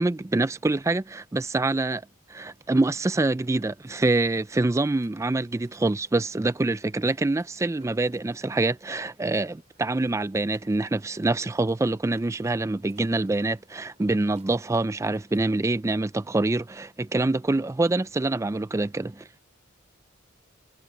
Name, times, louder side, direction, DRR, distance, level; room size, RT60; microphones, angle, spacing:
voice 1, 0.0-2.0 2.3-19.4, right 2 dB, 15° right, 0.3 m, -25 dB
sound 1, 2.5-15.6, right 4 dB, 35° right, 5.9 m, -64 dB
head